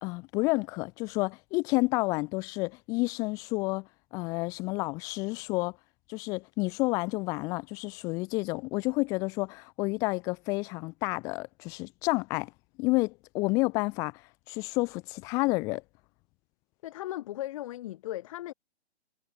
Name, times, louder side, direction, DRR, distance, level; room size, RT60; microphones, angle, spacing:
voice 1, 0.0-3.9 4.1-5.8 6.1-12.5 12.8-14.2 14.5-15.8, left 25 dB, 10° left, 0.8 m, -30 dB
voice 2, 16.8-18.5, left 14 dB, 30° left, 6.1 m, -37 dB
figure-of-eight pair, 140°, 33 cm